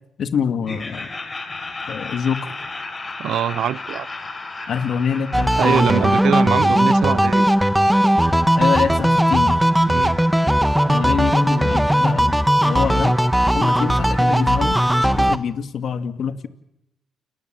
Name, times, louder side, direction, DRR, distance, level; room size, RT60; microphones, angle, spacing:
voice 1, 0.2-1.1 1.9-2.6 4.7-6.0 8.6-9.6 10.9-12.3 12.6-13.1 13.5-16.5, left 7 dB, 60° left, 2.2 m, -25 dB
Laughter, 0.6-7.6, left 3 dB, 25° left, 5.4 m, -34 dB
voice 2, 3.2-4.1 5.6-7.5 9.9-10.2, right 10 dB, 75° right, 1.0 m, -23 dB
sound 1, 5.3-15.4, equal, 5° right, 1.6 m, -17 dB
29.5 x 19.5 x 7.8 m
cardioid pair, 90°, 0 cm